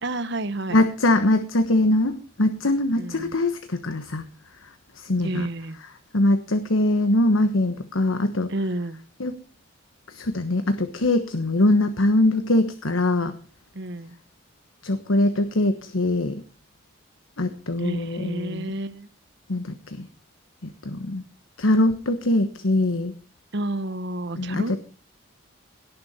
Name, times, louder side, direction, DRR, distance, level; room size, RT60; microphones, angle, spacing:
voice 1, 0.0-0.8 2.9-3.3 5.2-5.8 8.5-9.0 13.7-14.1 17.8-19.1 23.5-24.8, right 1 dB, 60° right, 12 dB, 1.1 m, -30 dB
voice 2, 0.7-4.2 4.9-5.5 6.1-8.5 9.2-9.4 10.1-13.3 14.8-16.4 17.4-18.7 19.5-20.1 20.6-21.2 21.6-23.1 24.4-24.8, left 1 dB, 85° left, 9 dB, 1.2 m, -22 dB
18.0 x 7.0 x 5.7 m, 0.35 s
head